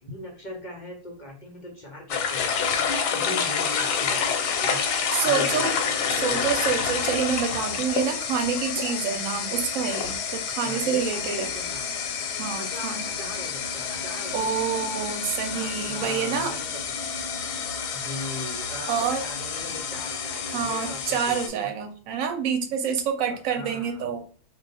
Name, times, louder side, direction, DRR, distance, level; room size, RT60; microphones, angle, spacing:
voice 1, 0.0-4.8 5.2-5.8 6.1-6.4 10.6-12.0 12.6-14.6 15.4-17.3 17.9-21.7 23.3-24.1, left 1 dB, 50° left, -1 dB, 0.5 m, -40 dB
sound 1, 2.1-21.5, left 6 dB, 90° left, 1.2 m, -28 dB
voice 2, 5.1-5.7 6.2-11.5 12.3-13.0 14.3-16.5 18.9-19.2 20.5-24.2, right 7 dB, 65° right, 5 dB, 1.0 m, -27 dB
2.4 x 2.4 x 3.9 m, 0.40 s
omnidirectional pair, 1.7 m